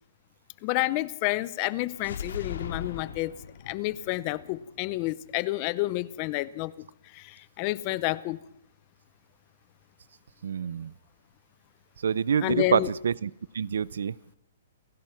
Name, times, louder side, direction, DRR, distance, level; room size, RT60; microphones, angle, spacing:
voice 1, 0.6-3.3 3.7-6.7 7.1-8.4 12.4-12.9, left 18 dB, 25° left, 0.7 m, -29 dB
sound 1, 1.9-5.8, left 6 dB, 75° left, 3.7 m, -40 dB
voice 2, 10.4-10.9 12.0-13.3 13.5-14.1, right 7 dB, 75° right, 0.7 m, -26 dB
28.5 x 15.5 x 5.9 m
hypercardioid pair, 175°, 0 cm